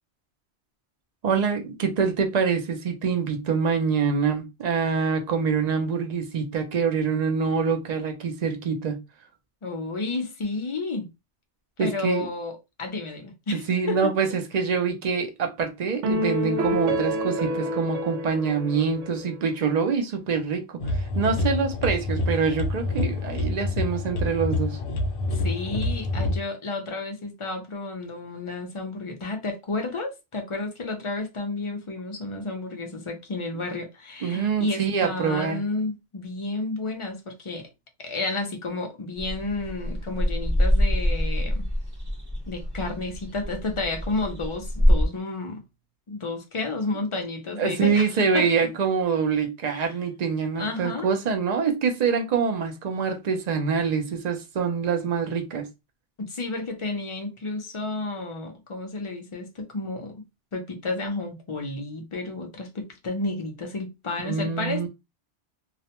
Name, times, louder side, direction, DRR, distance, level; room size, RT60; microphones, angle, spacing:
voice 1, 1.2-9.0 11.8-12.3 13.7-24.8 34.2-35.6 47.6-55.7 64.3-64.9, right 5 dB, 50° right, 0.5 m, -25 dB
voice 2, 9.6-11.1 11.8-14.1 16.7-16.9 25.3-37.7 38.0-41.6 42.5-45.6 46.1-48.5 49.7-49.9 50.6-51.1 56.2-60.1 60.5-64.9, left 3 dB, 40° left, 0.4 m, -31 dB
sound 1, 16.0-19.5, equal, 80° right, 0.9 m, -28 dB
sound 2, 20.8-26.4, left 2 dB, 65° left, 0.8 m, -27 dB
sound 3, 39.2-45.1, equal, 25° right, 0.7 m, -25 dB
2.4 x 2.1 x 2.8 m
omnidirectional pair, 1.2 m